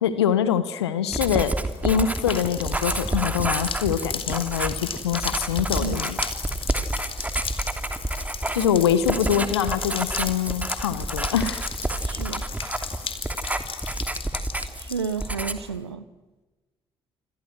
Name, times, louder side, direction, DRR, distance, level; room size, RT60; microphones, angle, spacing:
voice 1, 0.0-1.5 1.8-6.2 8.5-11.6, left 9 dB, 85° left, 14 dB, 1.3 m, -24 dB
Writing, 1.1-14.9 15.2-15.8, right 1 dB, 10° right, 3.1 m, -29 dB
sound 1, 1.3-15.4, left 6 dB, 45° left, 4.0 m, -35 dB
voice 2, 9.1-9.5 12.0-12.4 14.8-16.1, right 5 dB, 90° right, 15 dB, 1.1 m, -32 dB
29.5 x 26.5 x 6.4 m, 1.2 s
figure-of-eight pair, 45°, 13 cm